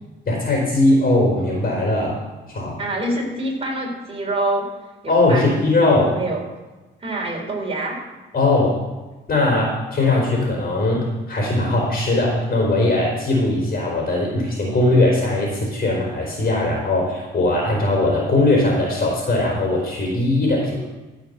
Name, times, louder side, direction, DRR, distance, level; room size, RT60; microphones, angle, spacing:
voice 1, 0.3-2.2 2.5-2.8 5.1-6.1 8.3-8.8 9.3-20.8, left 2 dB, 50° left, -2 dB, 4.3 m, -19 dB
voice 2, 2.8-4.7 5.0-6.4 7.0-8.0, right 2 dB, 30° right, 0 dB, 4.1 m, -26 dB
15.0 x 6.3 x 6.8 m, 1.2 s
cardioid pair, 90°, 20 cm